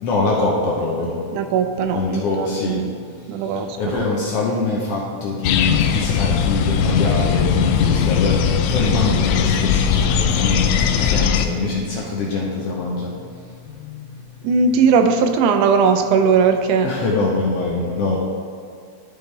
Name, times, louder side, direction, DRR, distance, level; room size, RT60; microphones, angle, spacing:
voice 1, 0.0-1.1 1.9-2.8 3.8-8.4 8.7-9.6 9.9-10.6 11.0-13.1 16.8-18.2, left 3 dB, 65° left, -3 dB, 1.6 m, -23 dB
voice 2, 1.3-2.9 3.3-4.0 14.4-16.9, right 5 dB, 85° right, 7 dB, 2.1 m, -18 dB
sound 1, 5.4-11.4, left 7 dB, 85° left, 1.5 m, -19 dB
12.0 x 5.3 x 3.3 m, 2.3 s
omnidirectional pair, 3.5 m